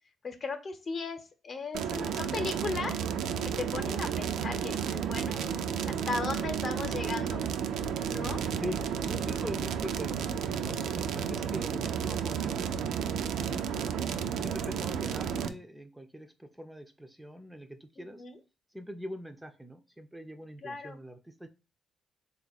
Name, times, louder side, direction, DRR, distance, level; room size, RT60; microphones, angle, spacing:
voice 1, 0.2-5.4 5.9-7.4 8.1-8.4 18.0-18.4 20.6-21.0, left 4 dB, 45° left, 8 dB, 0.8 m, -37 dB
sound 1, 1.7-15.5, right 7 dB, 80° right, 0.4 m, -32 dB
voice 2, 8.6-10.3 10.5-13.0 13.9-18.2 18.7-21.5, left 1 dB, 5° right, 7 dB, 0.4 m, -43 dB
3.5 x 2.4 x 3.9 m, 0.31 s
cardioid pair, 90°, 0 cm